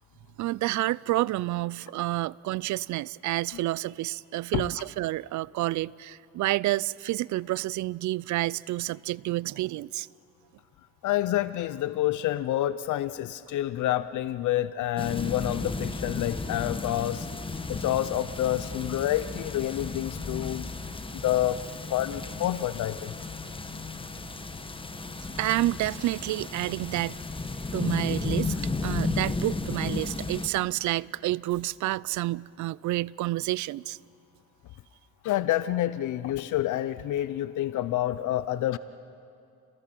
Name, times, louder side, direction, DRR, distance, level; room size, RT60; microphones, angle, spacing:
voice 1, 0.4-10.1 25.4-27.2 27.7-28.5 28.8-34.0, right 17 dB, 75° right, 0.4 m, -29 dB
voice 2, 11.0-17.3 17.7-20.7 21.1-21.6 21.9-23.1 35.2-38.8, left 13 dB, 75° left, 0.6 m, -28 dB
sound 1, 15.0-30.5, left 3 dB, 15° left, 1.3 m, -34 dB
29.5 x 19.5 x 6.0 m
cardioid pair, 90°, 30 cm